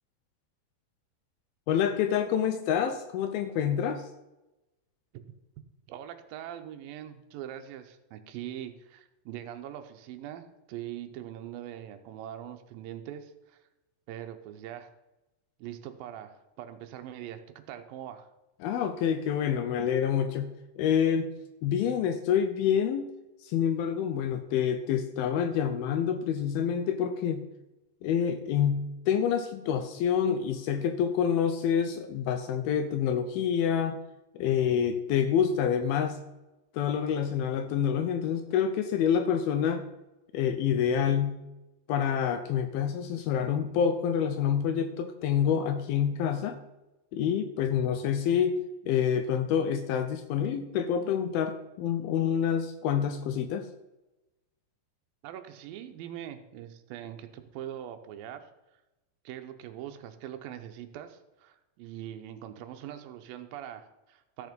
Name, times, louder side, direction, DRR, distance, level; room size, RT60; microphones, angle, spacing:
voice 1, 1.7-4.1 18.6-20.5 20.8-21.3 21.6-23.1 23.4-27.4 28.0-34.0 34.4-36.2 36.7-39.8 40.3-41.4 41.9-46.6 47.1-48.6 48.8-53.7, left 8 dB, 80° left, 9 dB, 2.2 m, -27 dB
voice 2, 5.9-13.6 14.1-14.9 15.6-18.3 55.2-58.5 59.2-64.5, right 11 dB, 75° right, 7 dB, 2.2 m, -42 dB
14.0 x 6.5 x 5.1 m, 1.0 s
omnidirectional pair, 4.9 m